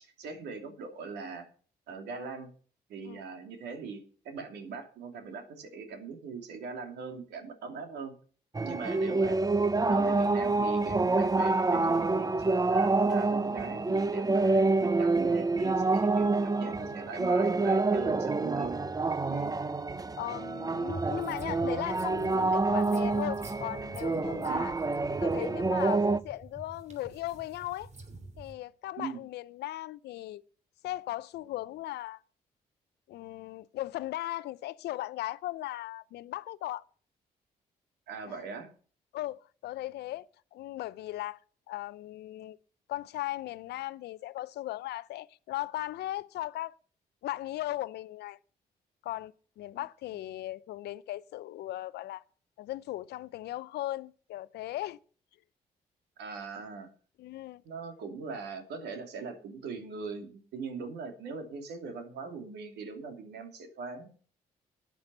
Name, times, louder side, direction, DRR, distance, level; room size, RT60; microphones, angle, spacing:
voice 1, 0.0-1.5 1.9-2.5 2.9-8.1 8.6-9.4 9.8-18.8 19.3-19.5 24.5-24.7 29.0-29.2 38.1-38.7 56.2-56.9 57.6-64.1, right 5 dB, 75° right, 2.7 m, -41 dB
sound 1, 8.5-26.2, right 3 dB, 20° right, 0.8 m, -27 dB
voice 2, 20.2-24.7 25.2-27.9 28.4-30.4 30.8-32.2 33.1-36.8 38.3-38.4 39.1-41.4 41.7-42.6 42.9-46.7 47.2-48.4 49.0-52.2 52.6-55.0 57.2-57.6, left 15 dB, 75° left, 0.6 m, -37 dB
sound 2, 20.9-28.5, right 2 dB, 40° right, 3.0 m, -45 dB
13.5 x 9.4 x 5.5 m
hypercardioid pair, 45°, 17 cm